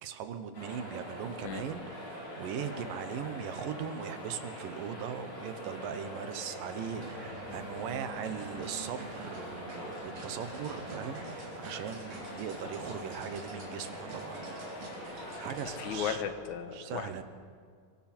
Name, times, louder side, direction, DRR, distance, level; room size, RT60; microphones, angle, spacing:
voice 1, 0.0-14.7 15.0-16.2 16.7-17.2, right 8 dB, 80° right, 9 dB, 2.9 m, -39 dB
sound 1, 0.5-16.1, equal, 45° left, 8.8 m, -43 dB
sound 2, 6.8-15.8, right 2 dB, 50° right, 4.4 m, -48 dB
voice 2, 15.8-17.1, left 8 dB, 65° left, 7 dB, 2.5 m, -35 dB
25.5 x 23.0 x 4.5 m, 2.1 s
omnidirectional pair, 4.0 m